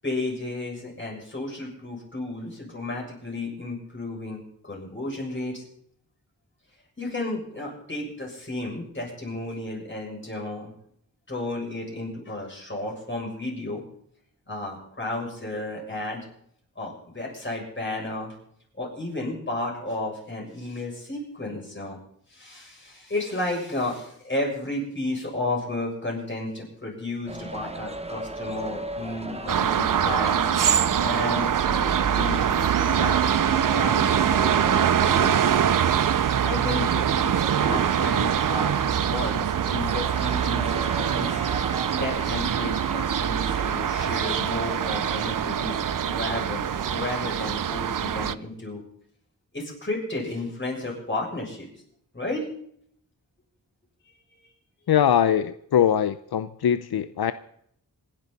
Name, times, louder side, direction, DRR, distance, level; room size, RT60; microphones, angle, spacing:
voice 1, 0.0-5.6 7.0-10.7 11.3-13.8 14.5-16.2 16.8-18.4 18.7-22.0 22.3-30.7 31.0-41.5 41.9-48.8 49.5-51.7 52.1-52.5, left 2 dB, 30° left, 7.1 m, -33 dB
sound 1, 27.3-47.1, right 2 dB, 15° right, 1.3 m, -37 dB
sound 2, 29.5-48.3, right 9 dB, 60° right, 0.6 m, -24 dB
voice 2, 54.9-57.3, left 9 dB, 85° left, 0.6 m, -22 dB
27.0 x 11.0 x 4.1 m
wide cardioid pair, 85°, 37 cm